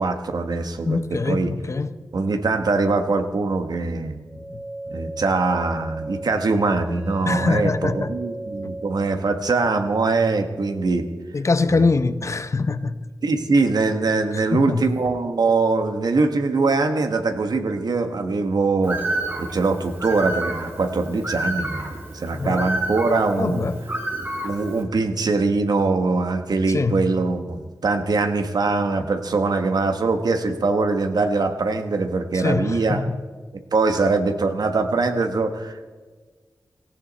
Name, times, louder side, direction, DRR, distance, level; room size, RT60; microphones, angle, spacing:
voice 1, 0.0-1.5 2.1-4.2 4.9-11.1 11.7-11.9 13.2-19.0 19.4-23.7 24.4-33.0 33.7-35.8, right 3 dB, 75° right, 1.4 m, -22 dB
voice 2, 0.9-2.0 4.3-4.6 7.2-8.1 8.6-8.7 11.3-13.0 14.3-14.8 22.3-22.6 23.4-23.9 26.7-27.0 32.3-33.2, left 3 dB, 45° left, 0.7 m, -23 dB
sound 1, 4.3-9.2, right 1 dB, 10° right, 1.1 m, -36 dB
Bird, 18.8-24.8, right 1 dB, 30° right, 2.5 m, -30 dB
17.5 x 15.5 x 4.2 m
wide cardioid pair, 95°, 7 cm